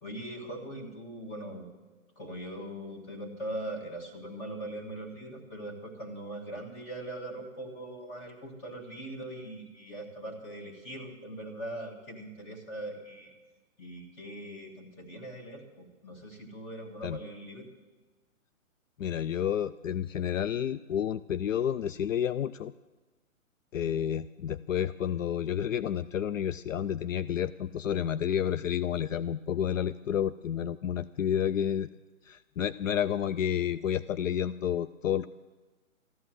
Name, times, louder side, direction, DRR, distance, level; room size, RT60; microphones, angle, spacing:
voice 1, 0.0-1.7 2.2-13.3 13.8-17.7, right 1 dB, 15° left, 0 dB, 1.7 m, -41 dB
voice 2, 19.0-22.7 23.7-31.9 32.3-35.3, left 9 dB, 65° left, 15 dB, 0.5 m, -30 dB
14.5 x 9.9 x 7.6 m, 1.2 s
hypercardioid pair, 150°, 41 cm